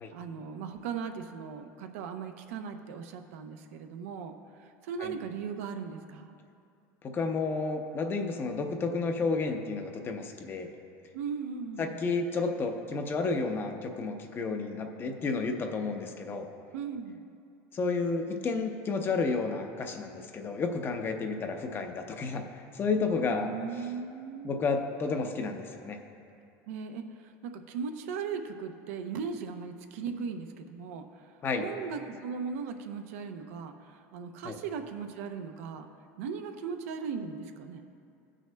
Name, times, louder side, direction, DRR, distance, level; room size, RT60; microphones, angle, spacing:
voice 1, 0.0-6.4 11.1-12.0 16.7-17.2 23.3-24.7 26.7-35.9 36.2-37.8, right 6 dB, 85° right, 6 dB, 0.6 m, -38 dB
voice 2, 7.1-10.7 11.8-16.5 17.7-23.5 24.4-26.0 31.4-31.6 34.4-34.6, left 4 dB, 30° left, 5 dB, 0.7 m, -31 dB
18.5 x 6.3 x 2.2 m, 2.5 s
supercardioid pair, 125°, 8 cm